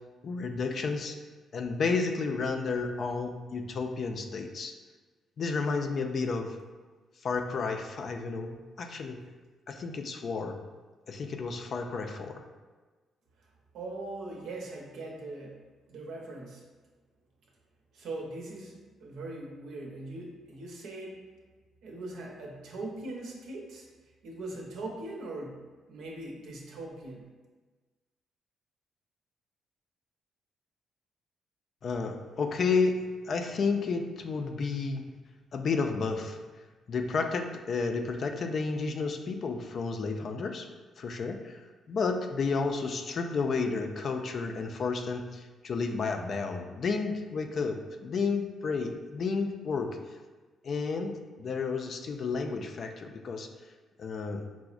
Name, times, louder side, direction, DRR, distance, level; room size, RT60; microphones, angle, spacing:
voice 1, 0.2-1.2 1.5-4.7 5.4-6.6 7.2-9.2 9.7-10.6 11.1-12.5 31.8-33.0 33.2-35.1 35.5-36.4 36.9-40.7 41.0-41.6 41.9-49.9 50.6-53.5 54.0-54.4, left 4 dB, 55° left, 4 dB, 0.3 m, -31 dB
voice 2, 13.7-15.6 15.9-16.6 17.9-21.3 21.8-23.9 24.2-25.6 25.9-27.3, right 2 dB, 80° right, -2 dB, 0.7 m, -40 dB
4.6 x 2.0 x 2.4 m, 1.3 s
cardioid pair, 90°, 0 cm